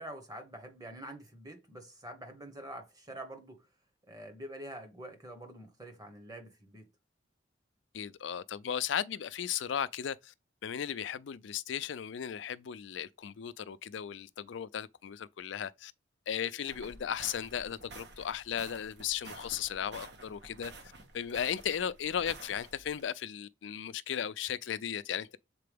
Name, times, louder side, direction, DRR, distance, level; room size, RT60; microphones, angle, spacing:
voice 1, 0.0-3.7 4.1-6.9, right 1 dB, 20° right, 1.3 m, -46 dB
voice 2, 7.9-10.3 10.6-15.9 16.3-20.7 21.1-25.4, left 8 dB, 70° left, 0.4 m, -36 dB
sound 1, 16.7-23.0, right 3 dB, 65° right, 1.2 m, -51 dB
6.7 x 4.2 x 3.5 m
head